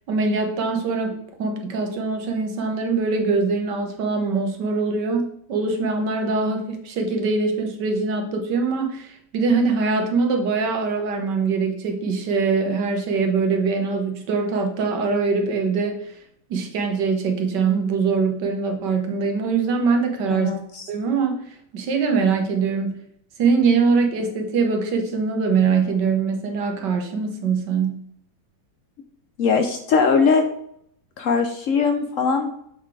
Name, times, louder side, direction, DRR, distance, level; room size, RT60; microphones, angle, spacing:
voice 1, 0.1-16.1 16.5-20.5 20.9-23.0 23.4-28.1, right 4 dB, 85° right, 4 dB, 1.7 m, -23 dB
voice 2, 20.3-20.9 29.4-30.4 31.2-32.5, left 5 dB, 65° left, 6 dB, 0.8 m, -20 dB
7.2 x 3.9 x 4.8 m, 0.71 s
omnidirectional pair, 1.8 m